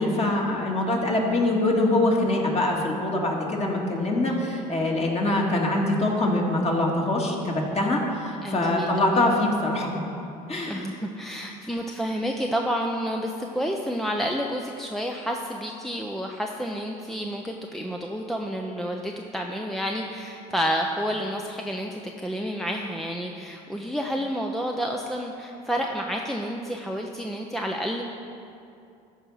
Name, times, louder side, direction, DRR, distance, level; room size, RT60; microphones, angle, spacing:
voice 1, 0.0-9.9 10.5-10.9, left 2 dB, 30° left, -1 dB, 2.1 m, -24 dB
voice 2, 8.4-8.9 9.1-9.2 10.7-28.0, equal, ahead, 1 dB, 0.7 m, -30 dB
13.5 x 4.7 x 5.6 m, 2.6 s
hypercardioid pair, 75°, 21 cm